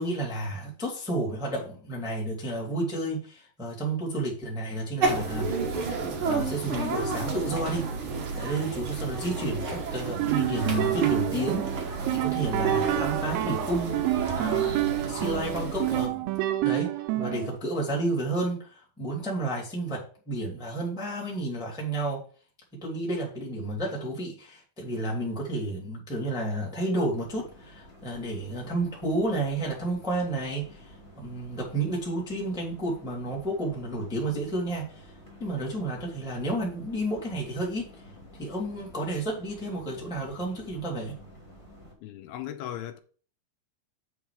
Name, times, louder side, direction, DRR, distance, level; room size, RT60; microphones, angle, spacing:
voice 1, 0.0-5.5 6.2-7.9 8.4-14.0 14.4-16.3 16.6-16.9 17.1-22.2 22.8-35.1 35.4-38.0 38.4-41.1, right 1 dB, ahead, 1.2 m, -31 dB
sound 1, 5.0-16.1, right 4 dB, 65° right, 1.3 m, -31 dB
sound 2, 10.1-17.6, right 16 dB, 85° right, 2.6 m, -28 dB
sound 3, 27.1-41.9, equal, 20° left, 0.9 m, -51 dB
voice 2, 42.0-43.0, left 11 dB, 90° left, 2.6 m, -37 dB
8.3 x 4.7 x 4.8 m
omnidirectional pair, 4.5 m